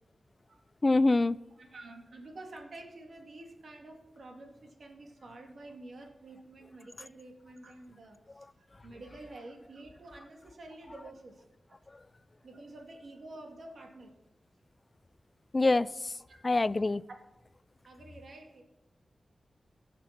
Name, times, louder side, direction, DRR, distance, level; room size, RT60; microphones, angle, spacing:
voice 1, 0.8-1.4 15.5-16.1 16.4-17.0, left 2 dB, 35° left, 0.3 m, -25 dB
voice 2, 1.6-8.5 8.8-11.4 12.4-14.1 16.3-16.4 17.8-18.6, right 2 dB, 70° right, 2.0 m, -49 dB
16.5 x 6.0 x 5.8 m
wide cardioid pair, 80°, 0 cm